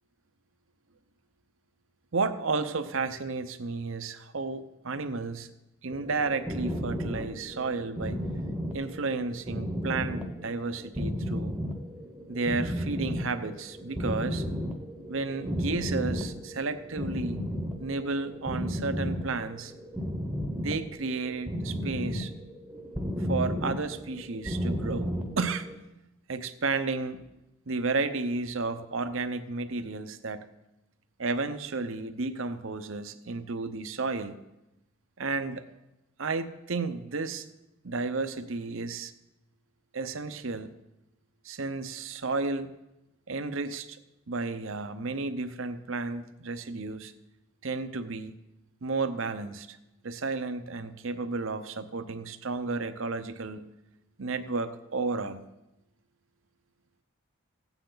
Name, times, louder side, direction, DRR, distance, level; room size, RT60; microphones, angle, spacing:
voice 1, 2.1-5.5 5.8-8.2 8.7-11.6 12.3-14.4 15.1-17.4 17.8-19.7 20.5-22.3 23.2-25.7 26.3-27.2 27.7-30.5 31.2-34.4 35.2-35.6 36.2-37.5 37.8-39.1 39.9-40.7 41.4-42.7 43.3-44.0 44.3-47.1 47.6-48.3 48.8-49.8 50.0-53.7 54.2-55.4, right 3 dB, 65° right, 10 dB, 0.8 m, -32 dB
sound 1, 5.9-25.8, equal, 5° right, 1.0 m, -34 dB
16.0 x 9.1 x 3.9 m, 0.94 s
head